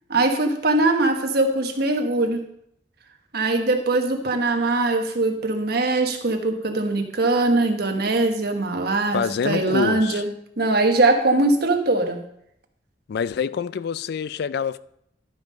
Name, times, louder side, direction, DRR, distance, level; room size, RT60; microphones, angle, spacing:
voice 1, 0.1-2.4 3.3-10.3 10.6-12.2, right 2 dB, 60° right, 1.3 m, -21 dB
voice 2, 9.1-10.2 13.1-14.8, left 6 dB, 60° left, 0.3 m, -26 dB
11.5 x 5.6 x 5.2 m
head